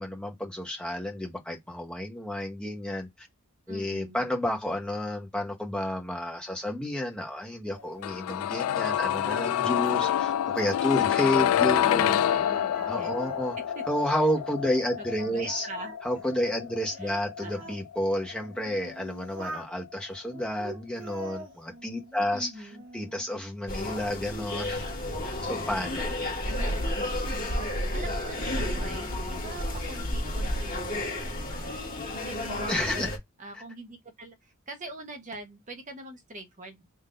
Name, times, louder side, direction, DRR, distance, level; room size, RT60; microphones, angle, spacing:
voice 1, 0.0-3.3 3.7-12.2 12.9-13.6 13.9-15.7 16.0-22.5 22.9-24.8 25.4-26.1 32.7-33.1, left 1 dB, 5° left, 0.9 m, -31 dB
voice 2, 3.7-4.2 11.8-13.1 13.7-13.8 15.0-15.9 17.0-17.8 22.3-22.8 26.4-27.1 27.9-31.7 32.2-36.9, right 2 dB, 35° right, 1.0 m, -44 dB
Singing, 7.7-12.2 12.5-14.8 15.2-17.8 18.4-19.7 20.3-22.3 22.7-23.3, right 1 dB, 60° right, 1.1 m, -46 dB
sound 1, 8.0-19.9 20.1-20.2, left 10 dB, 80° left, 0.3 m, -28 dB
sound 2, 23.7-33.2, left 1 dB, 40° left, 1.7 m, -31 dB
3.8 x 2.7 x 3.7 m
head